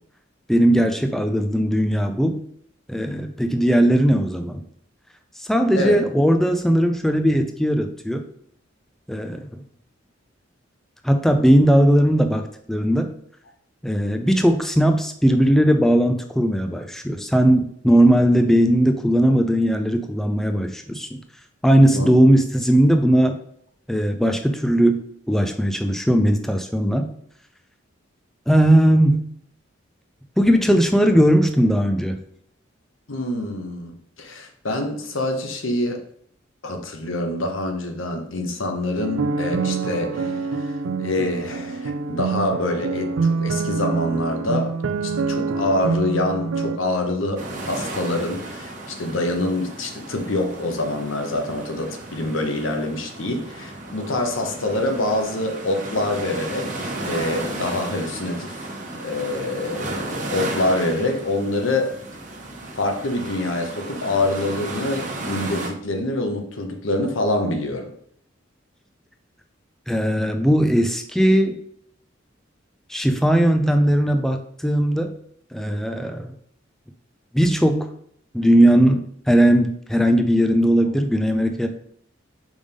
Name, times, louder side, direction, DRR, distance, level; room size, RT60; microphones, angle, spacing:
voice 1, 0.5-2.4 2.9-4.6 5.4-8.3 9.1-9.5 11.0-13.1 13.8-21.2 21.6-23.4 23.9-25.0 25.3-27.1 28.5-29.2 30.4-32.2 69.9-71.6 72.9-75.1 75.5-76.3 77.3-77.9 78.3-81.7, equal, ahead, 5 dB, 0.4 m, -18 dB
voice 2, 33.1-36.0 36.6-58.6 58.9-61.9 62.7-67.9, left 2 dB, 90° left, 4 dB, 1.0 m, -26 dB
sound 1, 39.0-46.8, right 4 dB, 75° right, 0.4 m, -25 dB
sound 2, 47.4-65.7, right 2 dB, 40° right, 1.1 m, -34 dB
5.1 x 3.5 x 5.2 m, 0.65 s
head